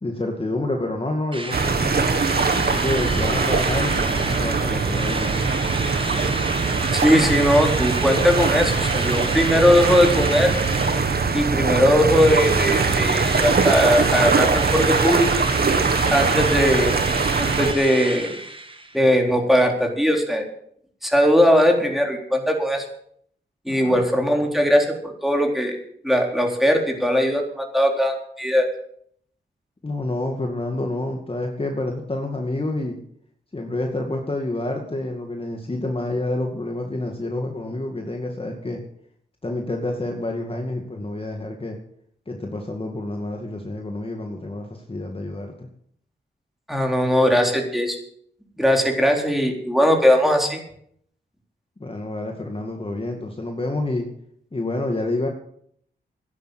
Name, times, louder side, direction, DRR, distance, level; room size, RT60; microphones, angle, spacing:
voice 1, 0.0-2.0 2.5-5.4 23.7-24.0 29.8-33.0 33.5-38.8 39.4-41.8 42.3-45.7 51.8-54.1 54.5-55.3, left 2 dB, 30° left, 2 dB, 2.2 m, -28 dB
Drill, 1.3-11.7 12.1-19.0, right 2 dB, 25° right, 2.1 m, -31 dB
sound 1, 1.5-17.7, right 4 dB, 55° right, 1.6 m, -22 dB
voice 2, 6.9-10.5 11.3-15.3 16.1-16.9 17.4-18.3 18.9-20.4 21.0-22.9 23.7-25.8 26.0-28.7 46.7-48.0 48.6-50.6, equal, ahead, 2 dB, 3.9 m, -19 dB
12.5 x 10.5 x 8.3 m, 0.68 s
cardioid pair, 70°, 19 cm